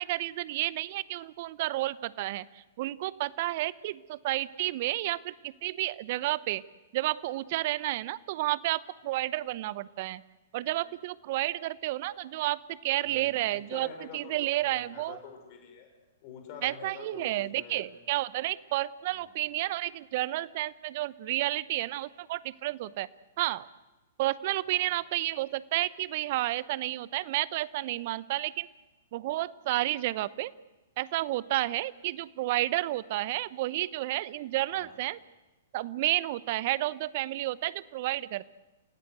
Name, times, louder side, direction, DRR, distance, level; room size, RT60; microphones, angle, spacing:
voice 1, 0.0-6.6 6.9-10.2 10.5-13.9 14.1-15.2 16.6-23.1 23.4-23.7 24.2-28.7 29.1-30.5 31.0-35.2 35.7-38.5, right 16 dB, 50° right, 19 dB, 0.8 m, -31 dB
voice 2, 13.0-15.9 16.2-17.8 19.1-19.3 24.7-24.9 34.7-35.0, left 6 dB, 45° left, 4 dB, 5.7 m, -47 dB
29.0 x 16.5 x 8.1 m, 1.1 s
hypercardioid pair, 115°, 0 cm